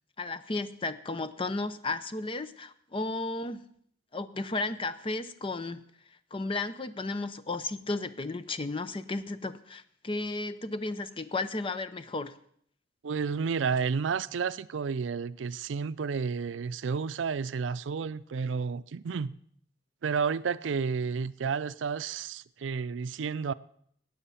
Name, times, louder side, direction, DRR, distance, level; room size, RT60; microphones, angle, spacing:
voice 1, 0.2-3.6 4.1-5.8 6.3-12.4, left 2 dB, 30° left, 0.6 m, -34 dB
voice 2, 13.0-19.3 20.0-23.5, right 5 dB, 85° right, 0.4 m, -31 dB
14.5 x 9.4 x 5.6 m
head